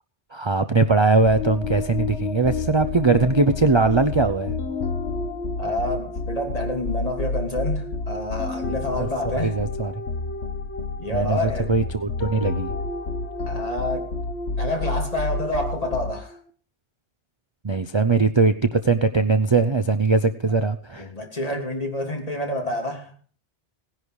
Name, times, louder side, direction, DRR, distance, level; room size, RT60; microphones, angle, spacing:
voice 1, 0.3-4.5 9.0-9.9 11.1-12.7 17.6-21.1, right 3 dB, 30° right, 0.7 m, -21 dB
sound 1, 1.3-16.4, left 3 dB, 75° left, 1.5 m, -29 dB
voice 2, 5.6-9.6 11.0-11.7 13.5-14.1 14.6-16.4 20.4-20.5 20.9-23.1, left 1 dB, 35° left, 3.2 m, -28 dB
18.0 x 10.5 x 4.8 m
omnidirectional pair, 1.1 m